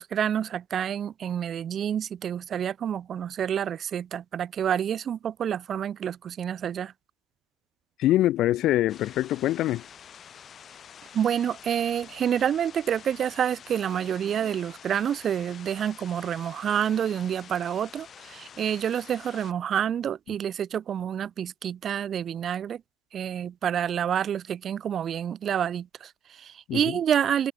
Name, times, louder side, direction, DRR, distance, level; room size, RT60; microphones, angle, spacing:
voice 1, 0.0-6.9 11.1-22.8 23.1-27.5, right 9 dB, 30° right, 1.1 m, -28 dB
voice 2, 8.0-9.9 26.7-27.0, left 14 dB, 45° left, 0.8 m, -24 dB
sound 1, 8.9-19.5, left 8 dB, 30° left, 6.6 m, -48 dB
hypercardioid pair, 115°, 0 cm